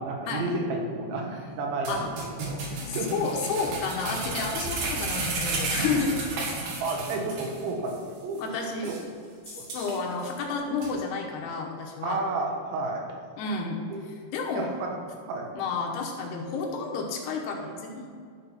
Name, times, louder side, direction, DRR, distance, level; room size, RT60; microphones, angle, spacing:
voice 1, 0.0-3.3 6.6-8.6 8.9-9.0 9.6-9.7 12.0-13.1 13.9-14.1 14.5-15.5, right 3 dB, 85° right, 1 dB, 3.6 m, -32 dB
sound 1, 1.9-7.6 7.9-8.0 8.4-8.5 8.8-9.0 9.5-10.3 10.8-10.9, right 3 dB, 60° right, 3.1 m, -32 dB
voice 2, 2.6-6.2 8.4-8.9 9.7-12.2 13.4-13.8 14.3-14.7 15.5-18.1, left 4 dB, 75° left, 1 dB, 2.9 m, -31 dB
11.0 x 7.6 x 5.8 m, 2.2 s
omnidirectional pair, 5.2 m